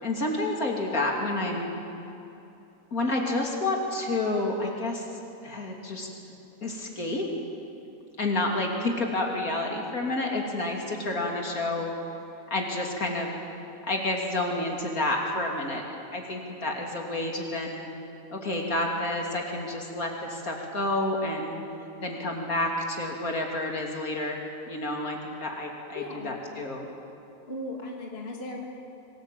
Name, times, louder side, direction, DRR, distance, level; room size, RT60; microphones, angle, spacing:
voice 1, 0.0-1.7 2.9-5.1 5.4-6.1 6.6-7.3 8.2-11.9 12.5-13.3 13.9-15.8 16.1-17.9 18.3-21.6 22.0-24.4 24.7-26.9, left 2 dB, 65° left, 0 dB, 3.4 m, -29 dB
voice 2, 25.9-26.3 27.5-28.7, left 2 dB, 40° left, 0 dB, 2.9 m, -36 dB
26.0 x 20.0 x 9.1 m, 2.9 s
omnidirectional pair, 1.6 m